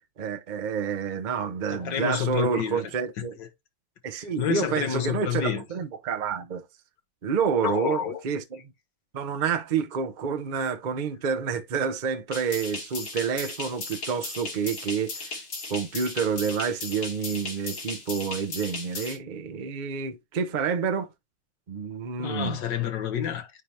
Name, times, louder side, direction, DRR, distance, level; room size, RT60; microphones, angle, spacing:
voice 1, 0.2-3.3 4.0-6.6 7.2-8.4 9.1-15.4 15.7-21.1 21.7-22.6, right 6 dB, 50° right, 0.5 m, -28 dB
voice 2, 1.7-2.9 3.2-3.5 4.2-5.7 7.6-8.2 22.2-23.6, left 9 dB, 70° left, 1.8 m, -29 dB
sound 1, 12.3-19.2, left 3 dB, 85° left, 3.5 m, -36 dB
9.8 x 3.4 x 2.8 m
omnidirectional pair, 2.1 m